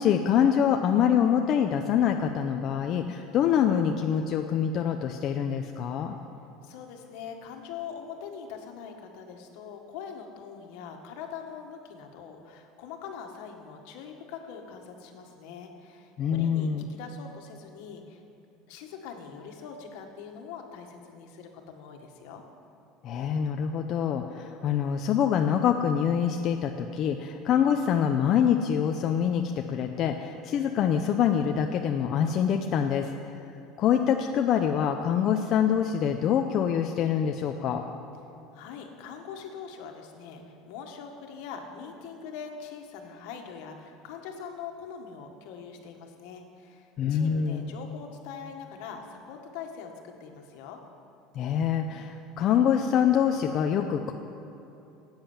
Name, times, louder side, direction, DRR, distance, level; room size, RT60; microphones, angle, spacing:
voice 1, 0.0-6.2 16.2-16.9 23.0-33.1 33.8-37.8 47.0-47.7 51.4-54.1, left 8 dB, 45° left, 4 dB, 0.6 m, -25 dB
voice 2, 6.6-18.2 18.7-22.4 38.5-50.8, left 6 dB, 75° left, 3 dB, 1.6 m, -43 dB
13.5 x 8.9 x 7.4 m, 3.0 s
cardioid pair, 140°, 0 cm